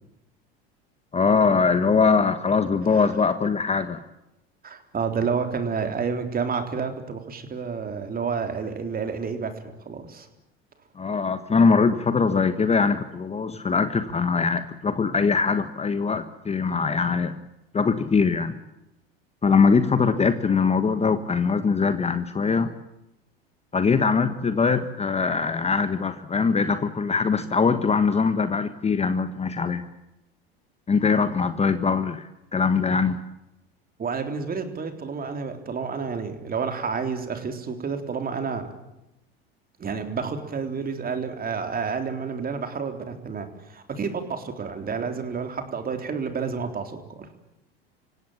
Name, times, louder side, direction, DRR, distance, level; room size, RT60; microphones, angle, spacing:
voice 1, 1.1-4.0 11.0-17.4 17.7-18.6 19.4-22.7 23.7-29.8 30.9-33.2, left 5 dB, 20° left, 11 dB, 1.3 m, -22 dB
voice 2, 4.6-9.5 9.9-10.3 34.0-38.7 39.8-47.3, right 5 dB, 30° right, 7 dB, 3.7 m, -30 dB
27.0 x 17.0 x 8.9 m, 0.90 s
hypercardioid pair, 90°, 31 cm